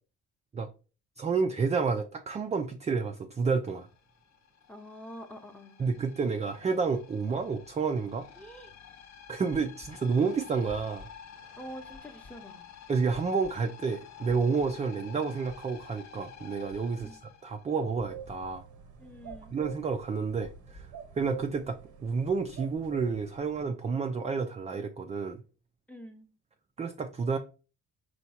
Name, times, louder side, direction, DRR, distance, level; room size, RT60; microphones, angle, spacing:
voice 1, 1.2-3.9 5.8-8.3 9.3-11.1 12.9-18.6 19.5-20.9 21.2-25.4 26.8-27.4, right 5 dB, 25° right, 0.3 m, -30 dB
sound 1, 3.6-18.2, left 8 dB, 65° left, 0.7 m, -50 dB
voice 2, 4.7-5.8 8.4-8.7 11.6-12.6 17.0-17.2 19.0-19.5 25.9-26.3, equal, 5° left, 0.8 m, -46 dB
sound 2, 9.8-9.9 10.7-11.1 11.9-12.3 13.1-13.5 14.3-14.7 15.5-15.9 16.7-17.1 18.0-18.4 19.3-19.7 20.4-20.9, left 3 dB, 35° left, 0.9 m, -49 dB
sound 3, 18.1-23.6, right 7 dB, 80° right, 0.8 m, -47 dB
4.4 x 2.3 x 4.1 m
cardioid pair, 90°, 30 cm